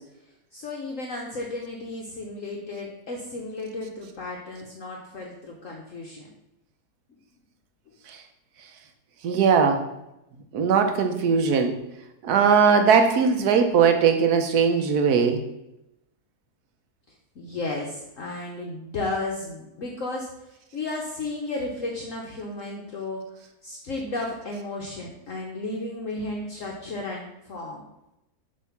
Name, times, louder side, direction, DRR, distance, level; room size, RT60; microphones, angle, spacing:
voice 1, 0.5-6.3 17.4-20.3 20.7-23.2 23.6-27.9, left 2 dB, 55° left, -1 dB, 1.1 m, -33 dB
voice 2, 9.2-9.9 10.5-11.7 12.2-15.4, right 6 dB, 65° right, 6 dB, 1.3 m, -19 dB
7.5 x 3.3 x 5.8 m, 0.88 s
omnidirectional pair, 1.8 m